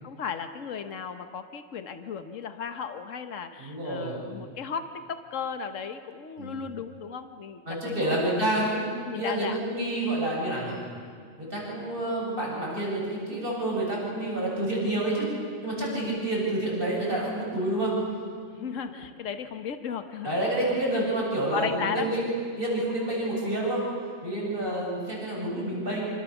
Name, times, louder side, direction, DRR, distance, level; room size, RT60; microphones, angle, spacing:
voice 1, 0.0-8.2 8.5-8.7 9.1-9.6 15.8-16.3 18.5-20.4 21.0-21.1 21.5-22.1 24.3-24.7, left 7 dB, 75° left, 8 dB, 1.5 m, -35 dB
voice 2, 3.6-4.2 6.4-6.7 7.7-10.8 11.4-15.3 15.6-18.0 20.2-22.3 22.6-23.8 24.2-26.0, right 1 dB, 45° right, -4 dB, 8.2 m, -28 dB
26.5 x 26.5 x 7.2 m, 2.2 s
omnidirectional pair, 1.3 m